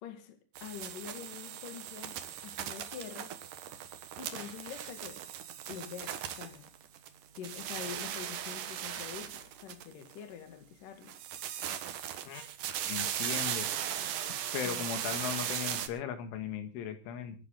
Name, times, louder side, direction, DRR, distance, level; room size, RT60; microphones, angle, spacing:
voice 1, 0.0-3.4 4.2-5.3 5.7-6.7 7.4-11.1 14.5-14.8, left 8 dB, 50° left, 3.2 m, -46 dB
sound 1, 0.5-7.1 7.3-10.2 11.0-15.9, right 10 dB, 70° right, 2.1 m, -38 dB
voice 2, 12.9-13.7 14.5-17.4, left 8 dB, 80° left, 4.2 m, -37 dB
26.0 x 10.5 x 3.8 m
omnidirectional pair, 5.6 m